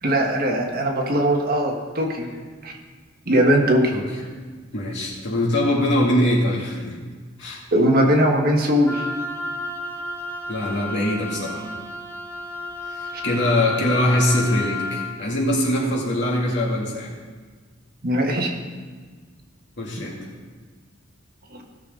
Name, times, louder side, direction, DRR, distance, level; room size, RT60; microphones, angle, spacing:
voice 1, 0.0-2.3 2.6-2.7 3.3-3.9 7.7-9.1 18.0-18.5 21.5-21.6, equal, 50° right, 1 dB, 1.5 m, -20 dB
voice 2, 4.7-7.0 7.4-7.6 10.5-11.7 12.9-17.1 19.8-20.2, left 1 dB, 65° left, -3 dB, 2.5 m, -22 dB
Wind instrument woodwind instrument, 8.9-15.1, left 2 dB, 10° left, 1.0 m, -32 dB
16.5 x 6.6 x 3.8 m, 1.5 s
head